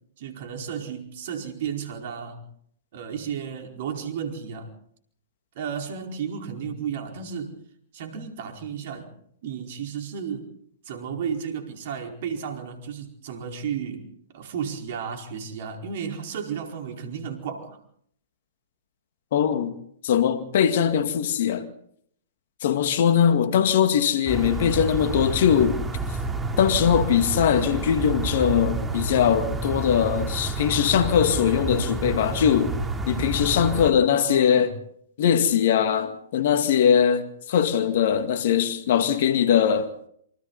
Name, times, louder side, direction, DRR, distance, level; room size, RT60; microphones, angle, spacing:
voice 1, 0.2-2.4 2.9-4.7 5.5-7.6 7.9-9.1 9.4-10.5 10.8-14.1 14.3-17.8 34.2-34.7, right 7 dB, 55° right, 4.7 m, -33 dB
voice 2, 19.3-19.7 20.0-21.7 22.6-25.8 26.6-32.8 33.1-34.7 35.2-39.9, left 8 dB, 55° left, 2.2 m, -21 dB
sound 1, 24.3-33.9, right 3 dB, 10° right, 3.5 m, -29 dB
27.5 x 25.0 x 4.1 m
figure-of-eight pair, 115°, 0 cm